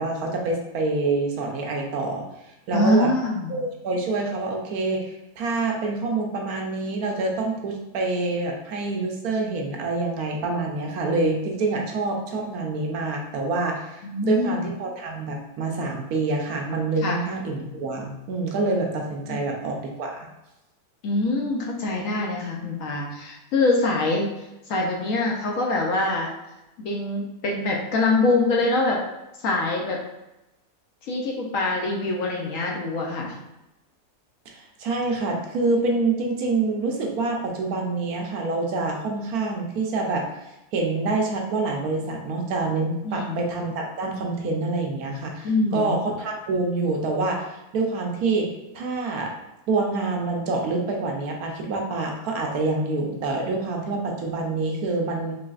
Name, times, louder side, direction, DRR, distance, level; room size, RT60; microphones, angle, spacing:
voice 1, 0.0-2.2 2.7-3.1 3.5-20.3 34.5-40.2 40.7-49.3 49.7-55.4, right 3 dB, 75° right, 1 dB, 1.1 m, -26 dB
voice 2, 2.7-3.5 14.0-14.5 17.0-17.2 19.3-19.4 21.0-24.3 24.7-26.3 26.8-29.0 29.4-30.0 31.1-33.3 43.0-43.4 45.4-45.9, left 2 dB, 65° left, -1 dB, 0.9 m, -24 dB
4.0 x 3.2 x 2.4 m, 0.94 s
omnidirectional pair, 1.7 m